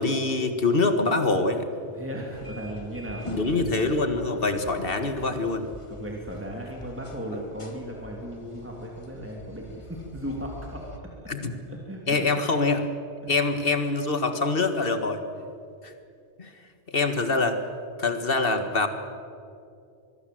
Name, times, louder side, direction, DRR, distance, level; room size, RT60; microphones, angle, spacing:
voice 1, 0.0-1.7 3.3-5.7 11.3-11.5 12.1-12.8 13.3-15.2 15.8-15.9 16.4-16.5 16.9-17.6 18.0-18.9, left 3 dB, 55° left, 8 dB, 1.9 m, -24 dB
voice 2, 1.9-3.8 4.2-4.3 5.1-5.3 5.9-11.3 11.7-12.2, equal, 10° right, -1 dB, 2.9 m, -36 dB
sound 1, 2.3-11.0, equal, 25° left, 2.0 m, -44 dB
25.0 x 20.5 x 7.8 m, 2.5 s
omnidirectional pair, 1.2 m